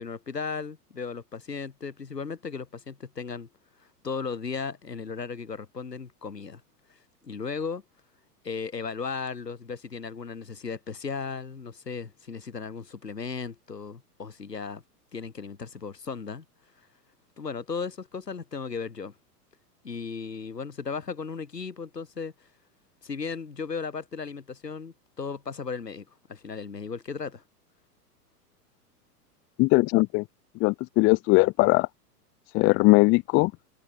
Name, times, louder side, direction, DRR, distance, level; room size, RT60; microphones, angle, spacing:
voice 1, 0.0-3.5 4.0-6.6 7.2-7.8 8.4-14.8 15.1-16.5 17.4-19.1 19.8-22.3 23.0-27.4, left 5 dB, 90° left, 5.3 m, -36 dB
voice 2, 29.6-30.2 30.6-31.9 32.5-33.5, left 23 dB, 25° left, 0.6 m, -20 dB
hypercardioid pair, 105°, 47 cm